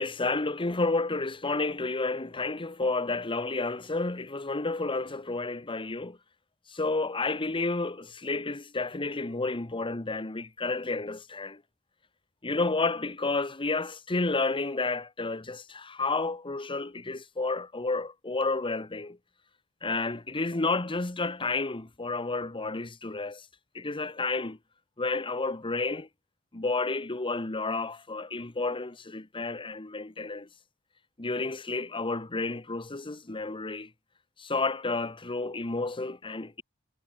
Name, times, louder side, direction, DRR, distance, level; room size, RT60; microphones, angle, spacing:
voice 1, 0.0-6.2 6.7-11.6 12.4-19.2 19.8-23.5 23.7-24.6 25.0-26.1 26.5-30.5 31.2-33.9 34.4-36.6, left 3 dB, 25° left, 1.1 m, -31 dB
head